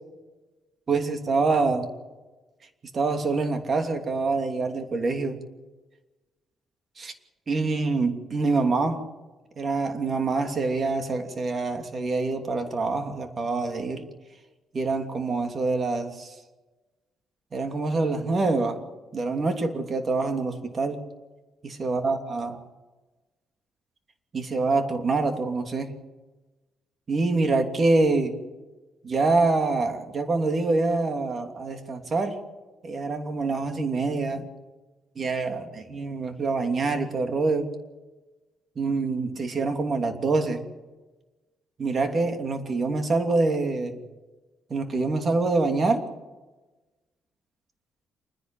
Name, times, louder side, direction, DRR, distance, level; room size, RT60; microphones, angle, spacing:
voice 1, 0.9-1.9 2.9-5.4 7.0-7.1 7.5-9.1 9.6-14.0 14.7-16.3 17.5-18.8 19.1-21.0 21.6-22.6 24.3-25.9 27.1-28.3 29.0-32.4 32.8-34.5 35.2-37.7 38.8-40.6 41.8-44.0 44.7-46.1, right 3 dB, 40° right, 6 dB, 2.9 m, -25 dB
28.5 x 10.5 x 9.2 m, 1.2 s
cardioid pair, 90°, 0 cm